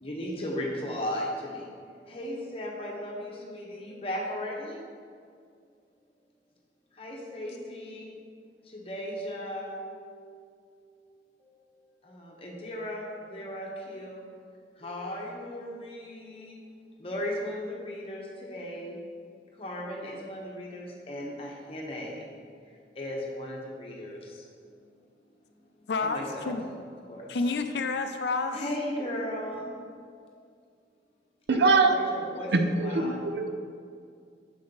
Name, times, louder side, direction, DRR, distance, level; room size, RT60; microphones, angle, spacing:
voice 1, 0.0-1.6 2.1-4.8 7.0-8.1 8.9-9.8 12.2-14.2 14.8-16.6 17.0-19.0 19.6-22.2 23.0-24.2 26.0-26.6 27.1-27.2 28.5-29.6 31.5-33.2, left 1 dB, 35° left, -2 dB, 1.1 m, -36 dB
voice 2, 25.9-26.8 27.3-28.6, left 3 dB, 70° left, 7 dB, 0.4 m, -29 dB
voice 3, 31.5-32.0 32.5-33.5, right 3 dB, 70° right, 7 dB, 0.5 m, -23 dB
6.8 x 5.2 x 4.0 m, 2.2 s
head